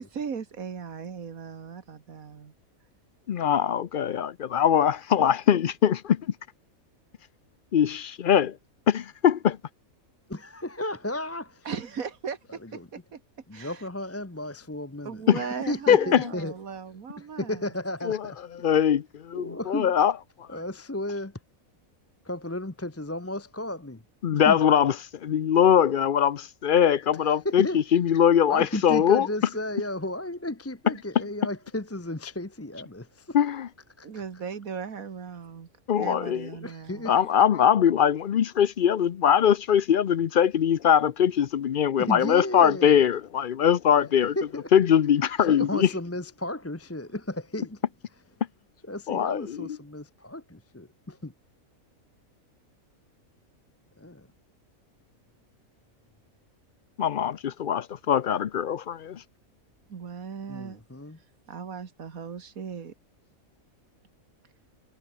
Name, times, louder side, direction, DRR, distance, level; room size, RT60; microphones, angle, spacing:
voice 1, 0.0-2.5 11.7-13.2 13.5-13.8 15.1-17.7 34.0-35.7 36.0-37.1 59.9-60.8 61.5-62.9, right 6 dB, 80° right, 2.1 m, -37 dB
voice 2, 3.3-6.3 7.7-8.6 8.9-9.6 15.3-15.4 15.9-16.3 18.1-18.3 18.6-20.1 20.4-20.6 24.2-24.9 25.2-29.3 33.3-33.7 35.9-36.5 37.1-44.4 44.7-45.9 49.1-49.8 57.0-59.2, left 9 dB, 55° left, 0.6 m, -22 dB
voice 3, 10.3-11.7 12.5-12.9 13.5-15.2 15.7-16.5 17.2-18.6 19.3-19.9 20.5-21.3 22.2-24.0 24.3-24.6 27.4-27.8 28.5-33.4 34.0-34.1 36.6-37.2 42.0-43.0 44.4-44.7 45.4-47.8 48.9-51.3 54.0-54.3 60.5-61.2, left 1 dB, 10° left, 0.9 m, -34 dB
omnidirectional pair, 1.5 m